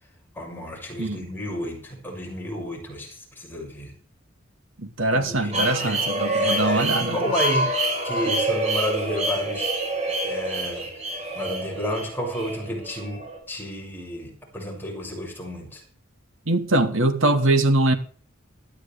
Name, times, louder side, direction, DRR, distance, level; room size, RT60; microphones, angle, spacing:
voice 1, 0.4-3.9 5.1-6.0 6.3-7.7 8.0-9.7 10.2-15.8, equal, 10° left, 7.0 m, -31 dB
voice 2, 4.8-7.2 16.5-18.0, right 2 dB, 85° right, 2.5 m, -22 dB
sound 1, 5.5-13.4, right 1 dB, 35° right, 5.9 m, -27 dB
19.5 x 13.0 x 3.6 m
head